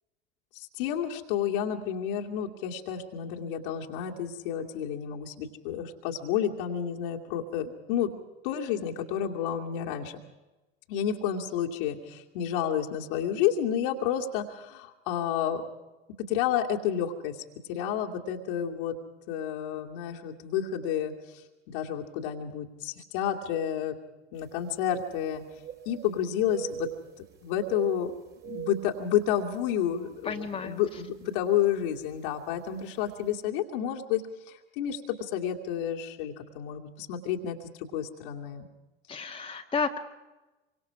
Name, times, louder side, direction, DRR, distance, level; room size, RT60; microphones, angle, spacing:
voice 1, 0.5-8.1 8.4-10.2 10.9-15.7 16.3-17.4 17.7-18.9 19.3-21.1 21.7-24.0 24.3-25.4 25.9-26.9 27.4-28.2 28.4-38.7, left 9 dB, 55° left, 2 dB, 2.5 m, -30 dB
sound 1, 24.5-24.6 24.8-26.1 26.4-27.3 27.6-29.7 30.1-30.3 30.9-31.2 32.3-32.4 32.7-32.8, right 10 dB, 35° right, 3.8 m, -41 dB
voice 2, 30.3-30.8 39.1-40.0, left 5 dB, 15° left, 3 dB, 1.8 m, -32 dB
27.0 x 24.5 x 4.9 m, 1.1 s
figure-of-eight pair, 75°, 31 cm